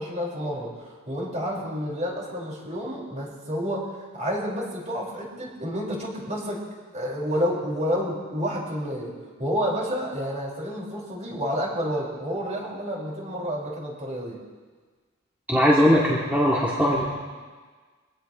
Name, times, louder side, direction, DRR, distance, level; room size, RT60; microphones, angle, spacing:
voice 1, 0.0-6.6 6.9-9.1 9.4-14.4, equal, 35° right, -4 dB, 5.0 m, -29 dB
voice 2, 15.5-17.2, equal, 10° right, -7 dB, 2.0 m, -20 dB
24.5 x 17.5 x 3.1 m, 1.5 s
head